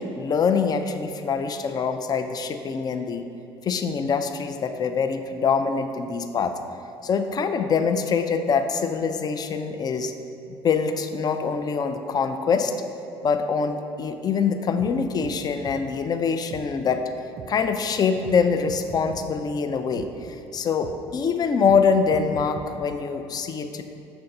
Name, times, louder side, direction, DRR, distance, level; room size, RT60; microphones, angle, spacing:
voice 1, 0.0-3.3 3.6-6.5 7.0-10.1 10.5-12.7 13.2-17.0 17.5-23.8, left 5 dB, 30° left, 8 dB, 0.4 m, -24 dB
sound 1, 14.8-14.9 15.2-15.3 15.6-15.8 16.5-16.6 17.4-17.5 18.2-18.4 18.7-19.2 19.9-20.1 20.8-20.9 21.7-21.8 22.1-22.7, right 7 dB, 45° right, 0.5 m, -39 dB
6.9 x 2.6 x 5.4 m, 2.8 s
figure-of-eight pair, 55°, 14 cm